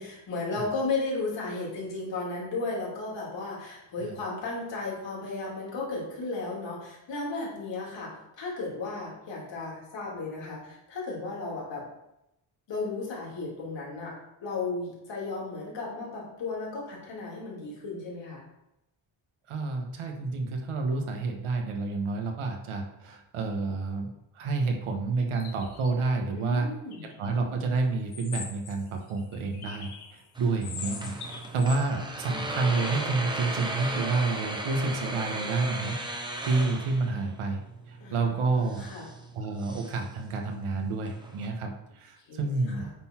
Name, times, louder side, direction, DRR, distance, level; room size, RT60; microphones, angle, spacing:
voice 1, 0.0-11.8 12.7-14.1 14.4-18.4 26.3-27.1 38.0-39.1 42.3-42.9, left 3 dB, 60° left, -4 dB, 2.8 m, -34 dB
voice 2, 19.5-26.7 27.0-37.6 37.9-38.9 39.3-42.9, right 3 dB, 80° right, 2 dB, 1.3 m, -29 dB
sound 1, 25.2-25.9 26.9-27.3 28.1-30.2 30.6-31.8, left 6 dB, 80° left, 1.4 m, -42 dB
sound 2, 30.4-41.5, right 1 dB, 10° right, 0.8 m, -37 dB
8.9 x 4.0 x 4.5 m, 0.87 s
wide cardioid pair, 155°, 50 cm